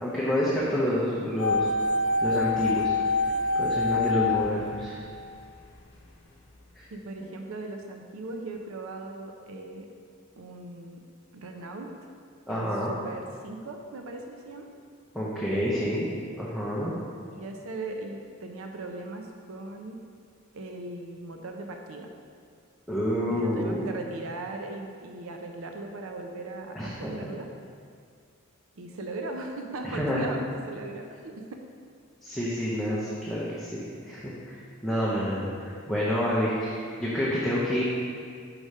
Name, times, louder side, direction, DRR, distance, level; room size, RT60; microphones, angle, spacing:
voice 1, 0.0-1.7 2.2-2.9 3.6-5.0 6.8-6.9 7.2-7.3 12.5-12.9 15.1-16.1 16.4-16.9 22.9-23.9 26.7-27.3 29.8-30.4 32.2-34.6 34.8-37.8, equal, ahead, -9 dB, 0.7 m, -28 dB
sound 1, 1.4-5.5 5.7-5.8, left 3 dB, 55° left, 0.8 m, -26 dB
voice 2, 6.9-9.9 10.4-11.0 11.3-11.9 12.5-14.7 17.3-20.0 20.5-22.1 23.3-27.5 28.8-31.6, right 2 dB, 75° right, 3 dB, 0.5 m, -38 dB
4.9 x 4.9 x 5.4 m, 2.2 s
head